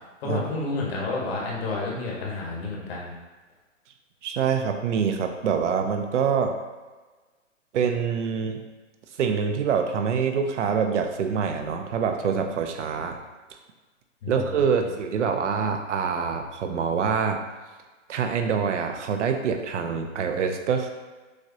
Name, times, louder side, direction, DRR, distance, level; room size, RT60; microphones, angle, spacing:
voice 1, 0.2-3.1 14.2-14.9, left 3 dB, 50° left, -3 dB, 1.4 m, -30 dB
voice 2, 4.2-6.6 7.7-8.6 9.2-13.2 14.3-17.4 18.1-20.9, right 6 dB, 70° right, 5 dB, 0.6 m, -25 dB
6.4 x 2.4 x 2.8 m, 1.3 s
hypercardioid pair, 140°, 38 cm